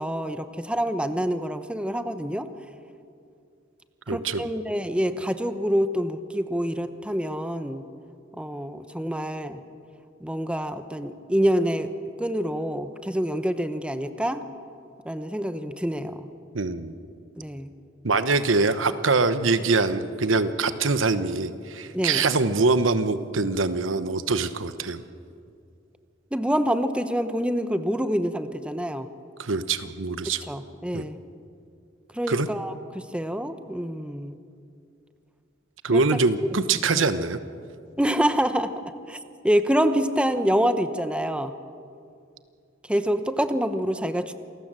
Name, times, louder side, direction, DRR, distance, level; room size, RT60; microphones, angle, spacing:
voice 1, 0.0-2.5 4.1-7.8 8.4-9.6 10.2-11.9 12.2-14.4 15.0-16.3 17.4-17.7 21.9-22.2 26.3-29.1 30.3-31.2 32.1-34.3 35.9-36.0 37.0-37.1 38.0-38.7 39.1-39.2 39.4-41.5 42.9-44.3, equal, 5° right, 10 dB, 0.9 m, -26 dB
voice 2, 4.1-4.4 16.5-16.9 18.0-25.0 29.4-30.4 30.9-31.1 32.3-32.5 35.8-37.4, right 3 dB, 85° right, 11 dB, 1.1 m, -23 dB
27.5 x 19.0 x 7.6 m, 2.4 s
head